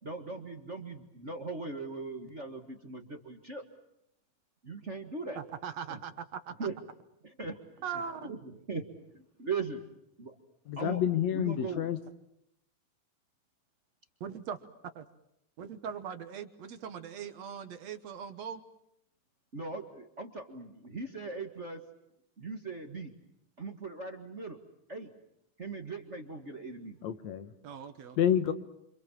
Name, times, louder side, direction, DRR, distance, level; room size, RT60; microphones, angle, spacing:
voice 1, 0.0-3.6 4.6-5.4 5.9-6.0 6.6-6.7 7.4-7.5 8.2-8.9 9.1-9.8 10.2-10.4 10.8-11.8 19.5-21.8 22.4-23.1 23.6-24.6 24.9-25.1 25.6-27.0, right 4 dB, 30° right, 4 dB, 1.5 m, -39 dB
voice 2, 5.4-6.1 7.8-8.3 14.2-14.7 15.0-15.1 15.6-18.6 27.6-28.2, right 7 dB, 65° right, 9 dB, 2.2 m, -40 dB
voice 3, 10.7-12.0 27.0-27.5 28.2-28.5, left 10 dB, 65° left, 10 dB, 2.3 m, -28 dB
29.0 x 26.0 x 7.4 m, 0.79 s
omnidirectional pair, 3.6 m